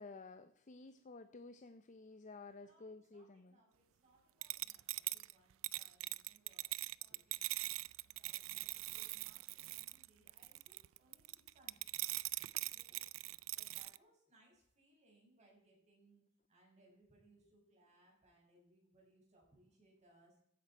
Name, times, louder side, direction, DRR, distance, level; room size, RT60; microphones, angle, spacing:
voice 1, 0.0-3.6, left 3 dB, 40° left, 0.6 m, -53 dB
voice 2, 2.2-7.7 8.0-11.9 12.7-13.0 13.5-20.4, right 1 dB, 35° right, 5.7 m, -70 dB
sound 1, 4.4-14.0, right 19 dB, 90° right, 0.4 m, -42 dB
15.5 x 9.2 x 4.4 m
head